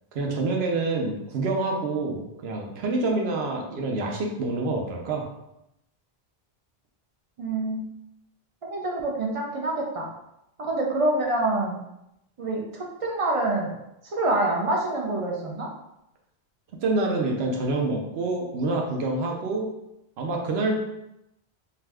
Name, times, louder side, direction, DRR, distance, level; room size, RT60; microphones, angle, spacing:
voice 1, 0.1-5.3 16.8-19.7 20.2-20.8, right 2 dB, 80° right, 1 dB, 0.9 m, -27 dB
voice 2, 7.4-7.9 8.6-10.1 10.6-11.8 12.4-13.7 14.0-15.7, right 2 dB, 50° right, -1 dB, 0.4 m, -26 dB
2.6 x 2.3 x 3.3 m, 0.85 s
omnidirectional pair, 1.1 m